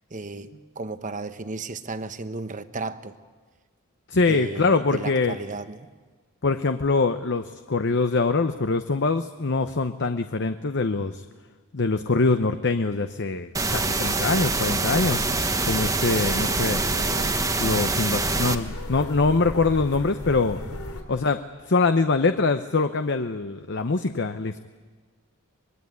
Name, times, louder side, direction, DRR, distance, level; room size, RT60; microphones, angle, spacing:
voice 1, 0.1-3.1 4.3-5.9, right 3 dB, 35° right, 1.0 m, -34 dB
voice 2, 4.1-5.4 6.4-11.2 11.7-15.3 15.6-16.8 17.6-20.6 21.1-21.4 21.7-24.6, left 3 dB, 55° left, 0.8 m, -23 dB
sound 1, 13.5-18.5, right 3 dB, 15° right, 1.2 m, -25 dB
sound 2, 14.9-21.0, left 1 dB, 85° left, 3.1 m, -36 dB
24.5 x 21.0 x 9.6 m
head